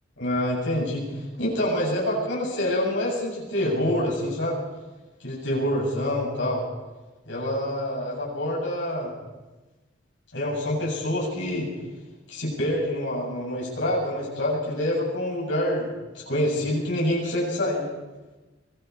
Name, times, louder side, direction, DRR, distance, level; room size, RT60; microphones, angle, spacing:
voice 1, 0.2-4.6 5.2-6.6 7.3-9.1 10.3-11.7 12.3-15.9 16.1-17.8, left 1 dB, 65° left, -3 dB, 8.0 m, -26 dB
25.0 x 21.5 x 4.9 m, 1.1 s
head